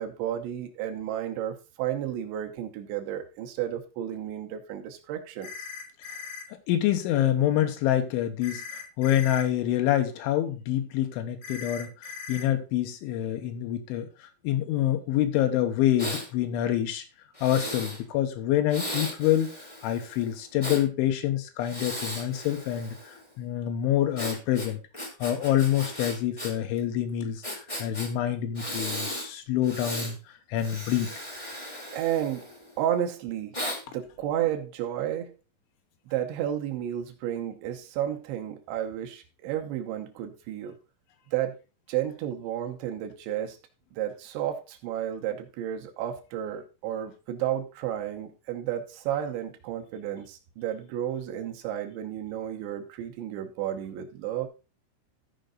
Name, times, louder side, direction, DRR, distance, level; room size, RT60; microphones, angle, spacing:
voice 1, 0.0-5.5 31.9-32.5 32.8-33.6 33.9-35.3 36.1-40.8 41.3-41.5 41.9-43.6 43.9-54.5, right 11 dB, 75° right, 3.1 m, -32 dB
sound 1, 5.4-6.5 8.4-9.5 11.4-12.5, left 6 dB, 60° left, 2.0 m, -39 dB
voice 2, 6.7-17.0 17.4-19.5 19.8-24.8 25.2-27.4 27.8-30.2 30.5-31.1, left 12 dB, 85° left, 3.4 m, -26 dB
Breathing, 16.0-16.3 17.3-18.0 18.7-20.8 21.6-23.2 24.1-26.5 26.8-26.9 27.4-28.1 28.5-29.3 29.6-30.1 30.6-32.7 33.5-33.8, equal, 25° left, 0.7 m, -36 dB
13.5 x 5.2 x 3.8 m
omnidirectional pair, 5.4 m